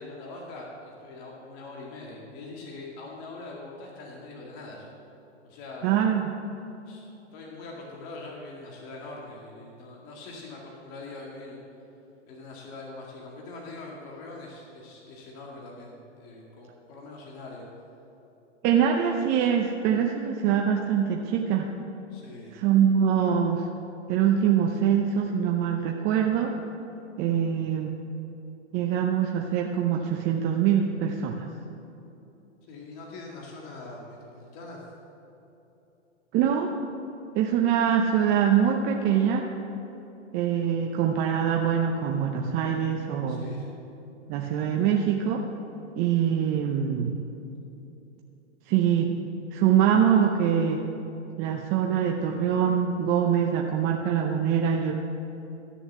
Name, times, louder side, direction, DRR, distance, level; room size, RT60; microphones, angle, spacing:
voice 1, 0.0-4.9 5.4-5.9 6.9-11.6 12.3-17.7 22.1-23.0 32.6-34.9 43.3-43.7, left 2 dB, 35° left, -2 dB, 2.1 m, -43 dB
voice 2, 5.8-6.2 18.6-21.7 22.5-23.7 24.1-26.5 27.2-27.9 28.7-31.5 36.3-36.7 37.3-39.5 40.3-43.5 44.3-45.4 46.0-47.1 48.7-49.1 49.5-50.8 51.4-55.0, right 8 dB, 25° right, 1 dB, 0.7 m, -24 dB
13.5 x 7.0 x 7.3 m, 3.0 s
hypercardioid pair, 135°, 36 cm